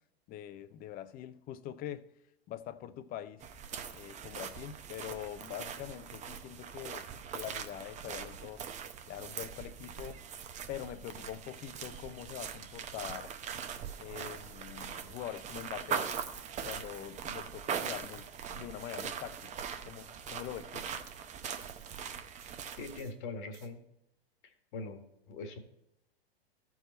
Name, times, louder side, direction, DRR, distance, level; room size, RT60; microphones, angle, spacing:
voice 1, 0.3-2.1 2.5-3.4 3.9-8.6 9.1-10.2 10.7-13.3 14.0-16.1 16.6-20.9, left 12 dB, 30° left, 0.6 m, -44 dB
sound 1, 3.4-23.0, right 7 dB, 25° right, 0.7 m, -41 dB
sound 2, 9.0-9.9 10.3-10.6 11.0-11.9 12.4-13.2 13.8-14.4 14.9-16.5 17.0-18.3 18.8-19.1 19.3-19.7 20.0-20.2 20.8-21.2 21.6-21.9 22.4-22.7 23.0-23.2 23.5-23.8, right 9 dB, 45° right, 1.6 m, -60 dB
voice 2, 22.8-23.8 24.4-25.6, left 3 dB, 55° left, 1.7 m, -42 dB
14.0 x 4.8 x 4.1 m
hypercardioid pair, 105°, 31 cm